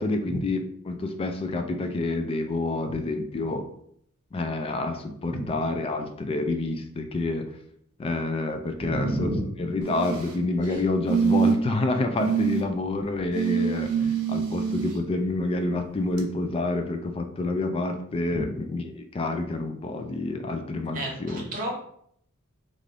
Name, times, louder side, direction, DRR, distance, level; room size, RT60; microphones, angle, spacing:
voice 1, 0.0-3.7 4.3-7.5 8.0-9.3 9.6-13.9 14.3-21.4, left 2 dB, 25° left, 6 dB, 0.3 m, -28 dB
voice 2, 8.8-9.4 10.7-10.8 14.0-14.1 18.3-18.5 20.9-21.7, right 1 dB, 40° right, -1 dB, 0.8 m, -31 dB
sound 1, 9.8-10.4 11.1-11.8 12.2-12.6 13.3-14.9 16.2-16.3, right 6 dB, 75° right, 0.6 m, -25 dB
2.5 x 2.5 x 3.2 m, 0.68 s
head